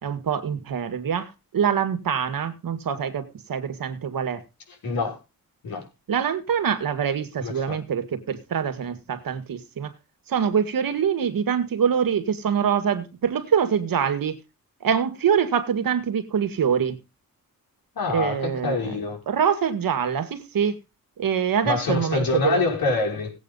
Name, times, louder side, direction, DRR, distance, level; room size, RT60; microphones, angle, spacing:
voice 1, 0.0-4.4 6.1-9.9 10.3-14.4 14.8-17.0 18.1-19.0 19.3-20.8 21.2-22.6, right 7 dB, 75° right, 2.0 m, -24 dB
voice 2, 4.8-5.2 5.6-5.8 7.4-7.8 18.0-19.2 21.6-23.3, left 3 dB, 85° left, 5.8 m, -25 dB
17.5 x 8.7 x 4.0 m
wide cardioid pair, 170°, 34 cm